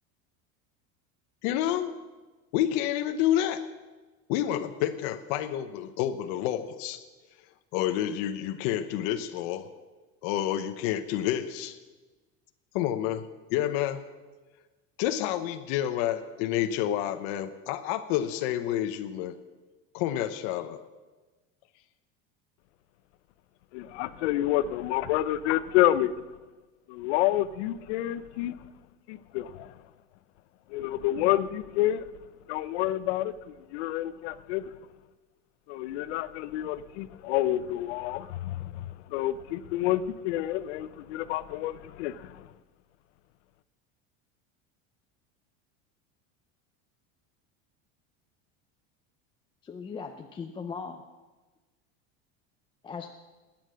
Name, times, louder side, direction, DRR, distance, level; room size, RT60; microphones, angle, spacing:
voice 1, 1.4-1.9 2.5-3.6 4.3-7.0 7.7-9.7 10.2-11.8 12.7-14.0 15.0-19.3 19.9-20.8, left 11 dB, 60° left, 1.0 m, -29 dB
voice 2, 23.7-26.2 26.9-28.6 29.1-29.8 30.7-32.0 32.5-34.7 35.7-42.5, left 14 dB, 90° left, 0.8 m, -29 dB
voice 3, 49.6-51.0 52.8-53.1, left 5 dB, 15° left, 0.6 m, -38 dB
20.0 x 9.0 x 6.4 m
cardioid pair, 160°, 33 cm